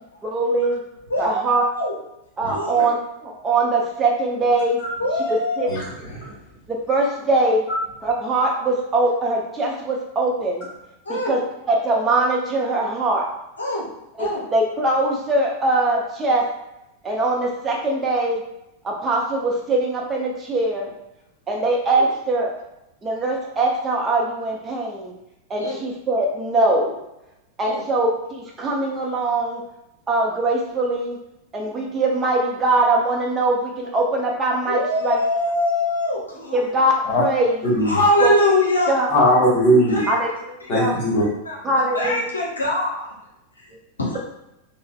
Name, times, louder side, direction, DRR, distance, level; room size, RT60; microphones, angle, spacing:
voice 1, 0.2-0.8 1.2-1.6 2.4-3.0 3.4-4.8 5.6-5.7 6.7-7.6 8.0-10.7 11.1-11.4 11.7-13.2 14.2-14.3 14.5-16.4 17.0-18.4 18.8-20.9 21.5-22.5 23.0-25.1 25.5-26.9 27.6-29.6 30.1-31.2 31.5-35.2 36.5-36.9 37.2-37.5 38.2-38.3 38.9-39.1 40.1-40.3 40.7-40.9 41.6-42.2, right 2 dB, 20° right, -2 dB, 0.6 m, -21 dB
voice 2, 1.1-2.0 2.5-2.9 5.0-5.7 11.0-11.3 13.6-13.9 14.2-14.4 22.0-22.1 25.6-25.8 27.6-27.8 34.7-36.6 37.8-38.9 40.0-40.1 40.6-40.7 41.4-41.6 41.9-43.0 44.0-44.2, left 1 dB, 75° left, -3 dB, 0.6 m, -22 dB
voice 3, 5.7-6.3 7.7-7.8 37.1-37.2 37.6-38.0 39.1-39.9 40.7-41.2, equal, 40° left, -4 dB, 1.2 m, -19 dB
3.8 x 2.1 x 2.4 m, 0.87 s
figure-of-eight pair, 90°, 0 cm